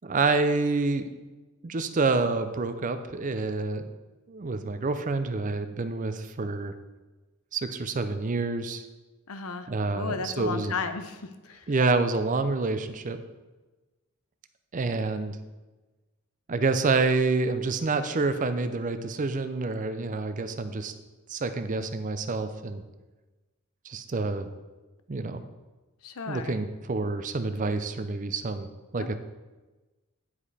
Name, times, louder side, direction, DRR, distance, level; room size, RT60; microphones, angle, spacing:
voice 1, 0.0-1.1 1.6-3.9 4.3-6.7 7.5-8.8 9.7-10.7 11.7-13.2 14.7-15.4 16.5-20.9 21.3-22.8 23.9-24.5 25.1-25.4 26.3-28.7 28.9-29.1, right 3 dB, 35° right, 10 dB, 0.5 m, -28 dB
voice 2, 9.3-9.7 9.9-11.6 26.0-26.5 29.0-29.1, left 4 dB, 80° left, 9 dB, 0.7 m, -34 dB
9.6 x 5.1 x 4.2 m, 1.2 s
head